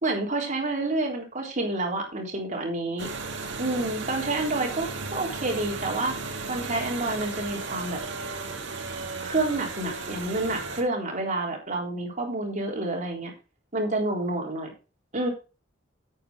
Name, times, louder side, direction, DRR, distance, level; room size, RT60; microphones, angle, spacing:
voice 1, 0.0-3.1 3.6-6.1 6.5-8.0 9.2-13.3 13.7-14.7 15.1-15.3, right 2 dB, 40° right, 0 dB, 3.7 m, -28 dB
sound 1, 3.0-10.8, right 3 dB, 65° right, 2.2 m, -35 dB
9.5 x 8.8 x 3.6 m, 0.31 s
head